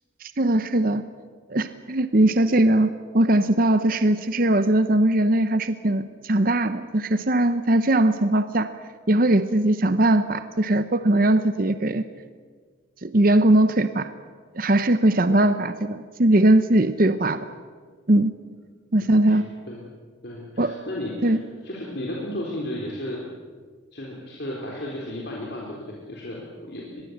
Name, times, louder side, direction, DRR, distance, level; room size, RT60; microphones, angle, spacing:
voice 1, 0.2-1.0 1.5-8.7 9.1-12.0 13.0-14.1 14.5-17.4 18.1-18.3 18.9-19.4 20.6-20.7 21.2-21.4, right 1 dB, 45° right, 11 dB, 0.8 m, -20 dB
voice 2, 19.3-19.8 20.2-23.2 23.9-27.0, left 1 dB, 55° left, -2 dB, 3.7 m, -34 dB
24.0 x 21.5 x 8.0 m, 1.6 s
head